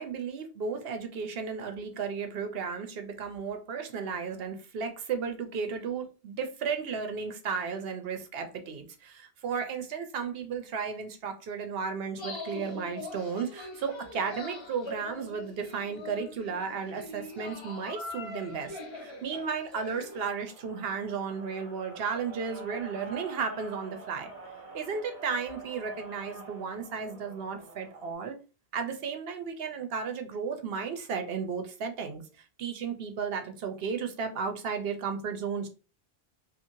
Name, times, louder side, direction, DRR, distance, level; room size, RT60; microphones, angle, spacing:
voice 1, 0.0-24.3 24.7-28.4 28.7-35.7, right 6 dB, 70° right, 0.8 m, -34 dB
sound 1, 12.2-20.3, left 2 dB, 35° left, 0.5 m, -42 dB
sound 2, 16.8-28.1, right 3 dB, 40° right, 1.4 m, -48 dB
2.9 x 2.4 x 2.6 m
omnidirectional pair, 1.1 m